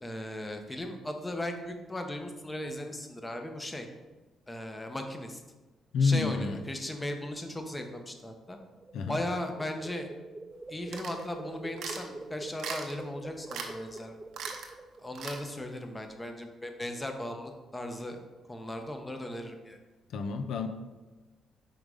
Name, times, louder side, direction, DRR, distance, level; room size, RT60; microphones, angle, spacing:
voice 1, 0.0-3.9 4.5-5.4 6.0-8.6 9.1-10.1 10.7-14.2 15.0-18.2 18.5-19.8, left 1 dB, 15° left, 5 dB, 0.8 m, -37 dB
voice 2, 5.9-6.6 8.9-9.2 20.1-20.7, left 4 dB, 75° left, 8 dB, 0.4 m, -28 dB
sound 1, 8.6-15.3, right 2 dB, 20° right, 0.4 m, -46 dB
sound 2, 10.9-11.3 11.8-12.1 12.6-13.0 13.5-13.7 14.0-14.1 14.3-14.7 15.1-15.4, right 5 dB, 75° right, 0.8 m, -38 dB
5.1 x 3.9 x 4.8 m, 1.2 s
cardioid pair, 90°, 0 cm